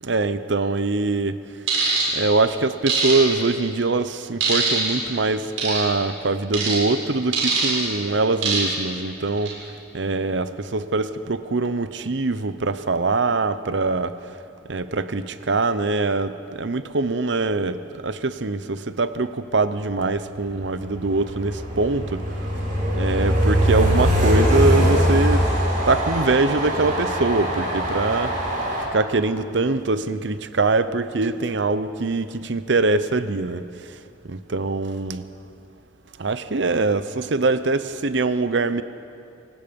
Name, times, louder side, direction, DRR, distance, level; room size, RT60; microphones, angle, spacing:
voice 1, 0.0-1.4 2.1-9.5 9.9-14.1 14.7-22.2 22.9-25.4 25.9-28.3 28.9-33.6 34.2-35.2 36.2-38.8, right 3 dB, 65° right, 12 dB, 0.8 m, -23 dB
sound 1, 1.7-2.1 2.9-3.5 4.4-4.9 5.6-5.8 6.5-6.8 7.3-7.8 8.4-8.8 9.3-9.5, right 4 dB, 90° right, 7.2 m, -22 dB
Train, 20.4-28.8, equal, 45° right, 5.6 m, -22 dB
27.5 x 18.5 x 5.3 m, 2.6 s
head